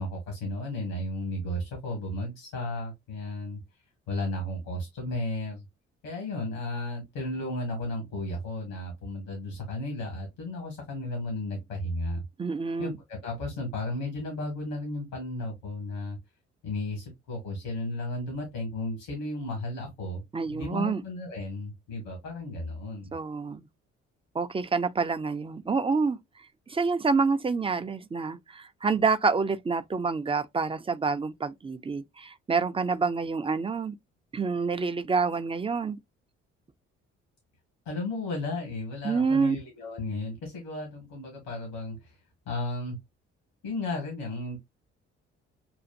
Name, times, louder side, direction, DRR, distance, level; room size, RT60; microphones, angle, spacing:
voice 1, 0.0-3.6 4.1-5.6 6.0-12.2 12.8-16.2 16.6-23.1 37.9-42.2 42.5-43.0 43.6-44.6, left 2 dB, 70° left, 2.1 m, -34 dB
voice 2, 12.4-13.0 20.3-21.0 23.1-23.6 24.3-26.2 26.7-33.9 34.3-36.0 39.0-39.6, right 4 dB, 15° right, 0.7 m, -27 dB
7.1 x 2.5 x 2.6 m
figure-of-eight pair, 45°, 35 cm